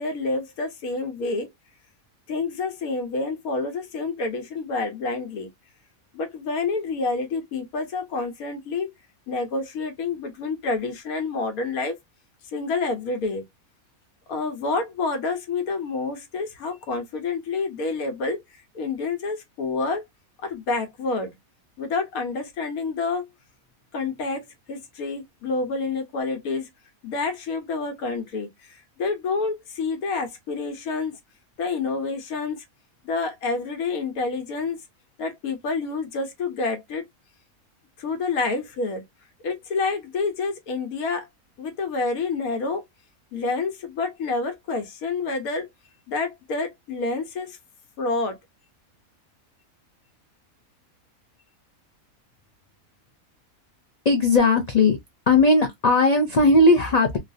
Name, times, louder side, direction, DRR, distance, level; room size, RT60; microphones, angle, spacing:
voice 1, 0.0-1.5 2.3-5.5 6.1-8.9 9.3-12.0 12.5-13.4 14.3-18.4 18.7-20.0 20.4-21.3 21.8-23.2 23.9-26.7 27.0-28.5 29.0-31.2 31.6-32.6 33.0-34.8 35.2-37.0 38.0-39.0 39.4-41.3 41.6-42.8 43.3-45.7 46.1-47.6 48.0-48.4, left 3 dB, 90° left, 1.4 m, -28 dB
voice 2, 54.1-55.0 55.3-57.2, left 2 dB, 55° left, 0.4 m, -17 dB
3.1 x 2.4 x 2.5 m
omnidirectional pair, 1.5 m